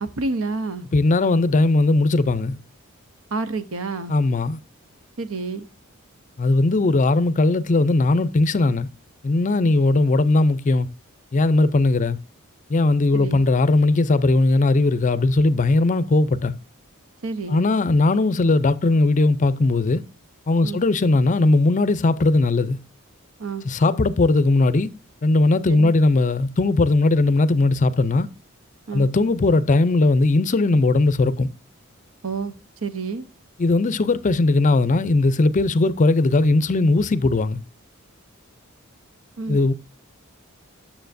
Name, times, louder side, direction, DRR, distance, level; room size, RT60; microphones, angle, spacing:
voice 1, 0.0-0.9 3.3-4.2 5.2-5.7 13.1-13.4 17.2-17.7 20.6-20.8 23.4-23.7 25.7-25.9 28.9-29.1 32.2-32.5 32.8-33.3 39.4-39.6, right 3 dB, 75° right, 0.8 m, -29 dB
voice 2, 0.9-2.6 4.1-4.6 6.4-8.9 9.2-10.9 11.3-12.2 12.7-16.5 17.5-20.0 20.5-22.8 23.6-24.9 25.2-28.3 28.9-31.5 33.6-37.6 39.5-39.7, left 2 dB, 35° left, 0.5 m, -18 dB
9.1 x 7.1 x 2.6 m
head